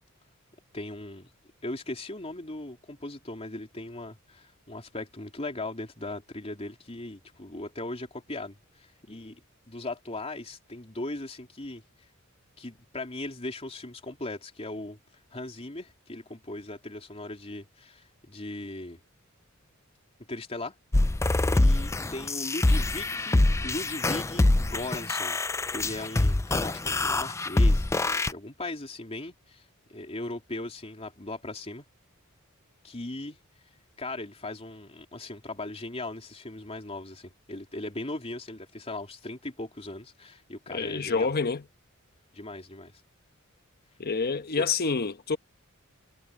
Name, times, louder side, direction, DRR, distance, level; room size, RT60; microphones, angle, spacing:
voice 1, 0.7-1.3 1.6-11.8 12.6-15.0 15.3-19.0 20.3-20.7 21.1-21.2 21.5-25.4 25.7-31.9 32.8-33.4 34.0-41.3 42.3-42.9 44.6-44.7, left 2 dB, 30° left, 3.4 m, -38 dB
sound 1, 20.9-28.3, left 2 dB, 15° left, 0.4 m, -25 dB
voice 2, 40.7-41.6 44.0-45.4, left 4 dB, 45° left, 1.1 m, -27 dB
head